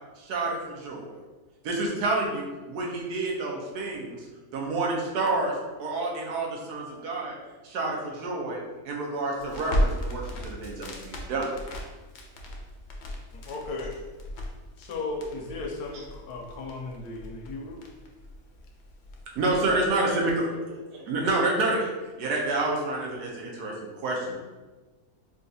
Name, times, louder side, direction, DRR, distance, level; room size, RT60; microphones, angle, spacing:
voice 1, 0.2-1.1 1.6-4.2 4.5-5.5 5.8-7.3 7.6-11.5 19.4-20.4 21.1-21.9 22.2-24.3, right 2 dB, 85° right, -1 dB, 1.2 m, -28 dB
Crackle, 9.4-19.9, equal, 65° left, 0.7 m, -35 dB
voice 2, 13.3-14.0 14.8-17.8, left 3 dB, 80° left, 2 dB, 1.1 m, -36 dB
voice 3, 19.7-21.5 24.2-24.3, right 1 dB, 50° right, -6 dB, 0.9 m, -44 dB
3.9 x 2.3 x 2.6 m, 1.2 s
omnidirectional pair, 1.6 m